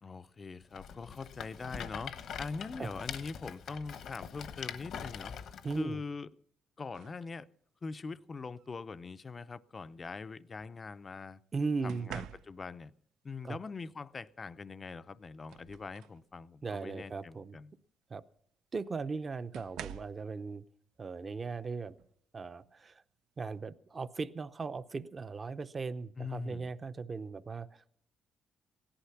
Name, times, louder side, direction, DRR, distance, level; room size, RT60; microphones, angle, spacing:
voice 1, 0.0-5.3 5.8-6.3 6.8-7.5 7.8-11.4 11.8-12.9 13.2-17.7 26.2-26.7, left 4 dB, 30° left, 14 dB, 0.5 m, -42 dB
Rattle, 0.7-5.8, left 7 dB, 65° left, 1.1 m, -43 dB
voice 2, 5.6-6.0 11.5-12.2 13.4-13.6 16.6-17.6 18.1-18.2 18.7-20.6 21.0-22.0 22.3-23.0 23.4-27.9, right 4 dB, 30° right, 12 dB, 0.7 m, -38 dB
sound 1, 6.9-7.3 8.5-8.8 11.9-12.9 14.6-14.7 15.1-16.3 16.7-17.0 18.4-18.5 19.5-20.3 22.0-22.2 22.6-22.9, right 10 dB, 85° right, 0.5 m, -48 dB
17.0 x 11.5 x 5.8 m, 0.65 s
cardioid pair, 110°, 0 cm